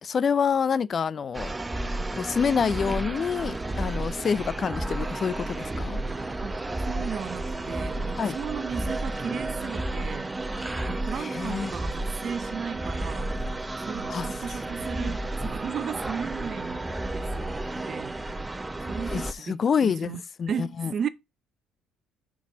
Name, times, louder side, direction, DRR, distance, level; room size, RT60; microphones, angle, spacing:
voice 1, 0.0-1.5 2.1-6.0 8.2-8.4 10.5-10.9 11.2-11.7 14.1-14.3 15.1-15.2 19.1-20.9, left 6 dB, 45° left, 0.4 m, -27 dB
sound 1, 1.3-19.3, right 2 dB, 15° right, 0.7 m, -32 dB
sound 2, 3.1-18.5, right 9 dB, 85° right, 1.0 m, -51 dB
voice 2, 6.8-10.3 10.8-13.3 13.8-16.9 17.1-17.5 17.9-18.4 18.9-21.1, right 7 dB, 50° right, 0.7 m, -35 dB
6.1 x 4.2 x 5.9 m
supercardioid pair, 70°, 0 cm